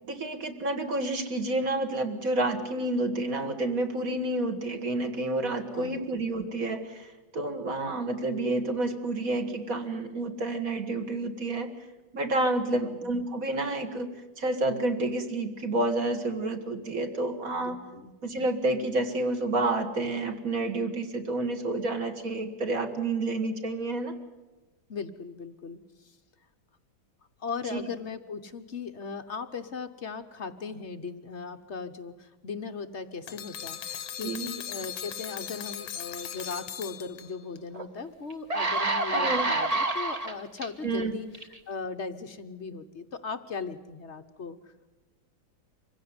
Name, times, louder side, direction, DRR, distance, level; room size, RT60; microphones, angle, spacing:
voice 1, 0.1-11.8 12.1-14.1 14.4-17.8 18.2-24.1 27.7-27.8 34.2-34.5 39.1-39.5 40.8-41.1, right 2 dB, 45° right, 6 dB, 2.2 m, -29 dB
voice 2, 5.7-6.0 12.7-13.0 17.5-18.1 24.9-26.2 27.4-44.7, left 5 dB, 45° left, 8 dB, 1.0 m, -38 dB
sound 1, 33.3-37.6, left 9 dB, 90° left, 1.9 m, -38 dB
sound 2, 37.7-37.8 38.3-40.7 41.3-41.6, right 2 dB, 25° right, 1.0 m, -28 dB
25.5 x 16.0 x 9.6 m, 1.2 s
omnidirectional pair, 2.2 m